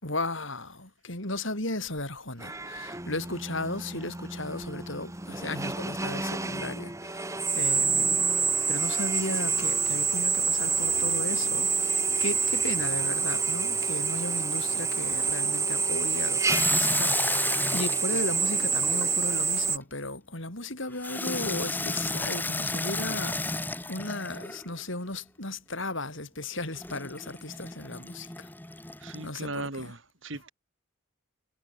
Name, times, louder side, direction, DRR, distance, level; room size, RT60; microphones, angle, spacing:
voice 1, 0.0-8.2 8.7-17.5 17.7-23.4 23.9-28.5 29.2-29.9, left 2 dB, 60° left, 7.4 m, -35 dB
Drill, 2.4-19.8, right 5 dB, 15° right, 2.3 m, -28 dB
Water tap faucet / Sink (filling or washing), 16.5-19.4 21.0-24.7 26.8-29.3, left 2 dB, 10° left, 1.1 m, -32 dB
voice 2, 29.0-30.5, right 2 dB, 60° right, 5.0 m, -38 dB
head